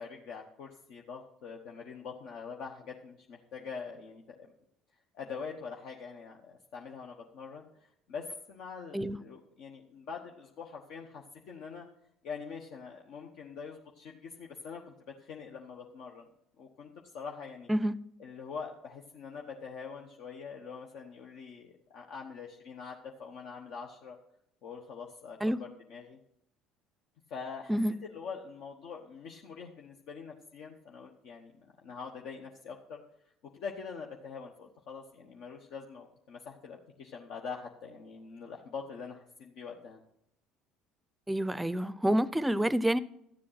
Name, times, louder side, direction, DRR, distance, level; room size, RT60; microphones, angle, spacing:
voice 1, 0.0-4.5 5.1-11.9 12.2-14.9 15.2-16.3 16.6-16.9 17.1-17.7 18.2-24.2 24.6-26.2 27.3-27.8 28.0-31.5 31.8-33.0 33.5-40.0, left 5 dB, 65° left, 1.2 m, -44 dB
voice 2, 17.7-18.0 25.4-25.6 27.7-27.9 41.3-43.0, right 1 dB, 10° right, 0.6 m, -28 dB
13.0 x 7.6 x 5.8 m
hypercardioid pair, 70°, 0 cm